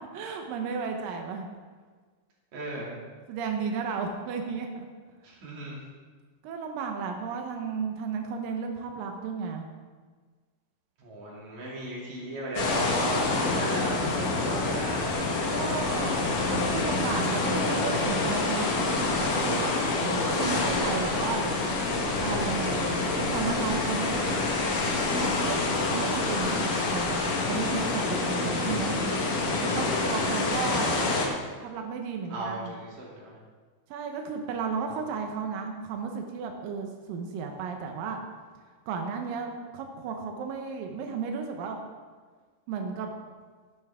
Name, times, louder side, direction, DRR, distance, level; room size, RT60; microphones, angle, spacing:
voice 1, 0.1-1.5 3.3-4.9 6.4-9.7 15.5-21.5 22.2-24.4 25.1-29.0 29.6-31.0 31.6-32.7 33.9-38.2 38.9-41.8 42.7-43.1, right 5 dB, 90° right, 3 dB, 1.9 m, -33 dB
voice 2, 2.5-3.0 5.2-5.8 11.0-15.2 29.8-30.4 32.3-33.4, right 1 dB, 45° right, -5 dB, 3.6 m, -36 dB
sound 1, 12.6-31.3, left 3 dB, 60° left, 2.3 m, -27 dB
12.5 x 11.5 x 3.6 m, 1.5 s
omnidirectional pair, 5.4 m